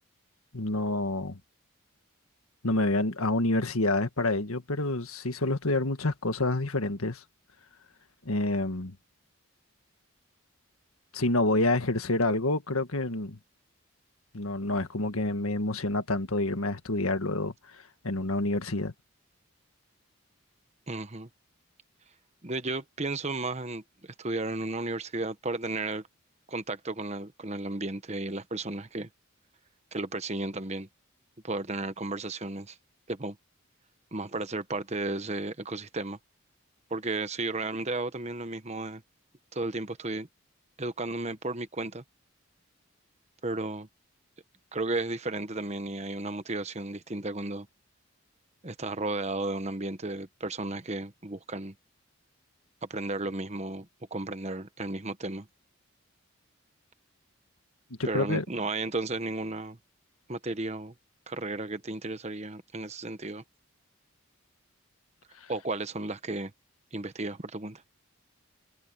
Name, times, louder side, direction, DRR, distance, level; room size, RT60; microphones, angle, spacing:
voice 1, 0.5-1.4 2.6-7.2 8.3-9.0 11.1-13.4 14.3-18.9 58.0-58.4 65.4-65.5, left 2 dB, 85° left, 1.7 m, -28 dB
voice 2, 20.9-21.3 22.4-26.0 26.5-29.1 29.9-30.9 31.4-32.8 33.1-33.4 34.1-36.2 36.9-39.0 39.5-40.3 40.8-42.0 43.4-43.9 44.7-47.7 48.6-51.7 52.9-55.5 58.0-59.8 60.3-60.9 61.3-63.4 65.5-66.5 66.9-67.8, right 2 dB, 30° right, 1.1 m, -34 dB
head